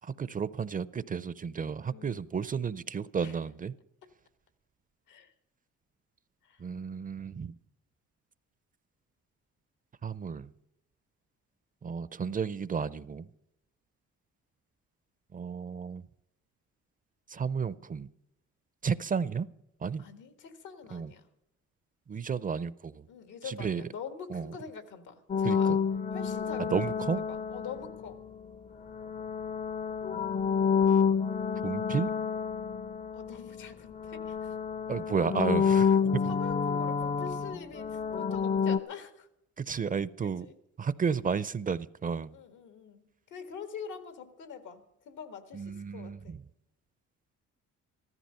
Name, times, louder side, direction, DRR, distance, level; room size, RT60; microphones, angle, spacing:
voice 1, 0.0-3.7 6.6-7.5 10.0-10.5 11.8-13.3 15.3-16.0 17.3-18.1 18.8-19.5 19.8-20.0 20.9-21.1 22.1-23.1 23.5-23.8 24.3-24.5 25.4-25.8 26.6-27.2 31.6-32.1 34.9-36.2 39.6-40.5 40.8-42.4 45.5-46.4, right 6 dB, 30° right, 17 dB, 0.5 m, -32 dB
voice 2, 20.0-21.3 23.1-25.8 26.1-28.2 33.1-34.6 36.2-39.3 40.2-40.5 42.1-46.4, left 7 dB, 90° left, 8 dB, 1.7 m, -45 dB
sound 1, 25.3-28.2 28.9-33.7 33.9-38.8, left 6 dB, 25° left, 0.5 m, -29 dB
15.0 x 13.5 x 5.6 m, 0.80 s
cardioid pair, 90°, 30 cm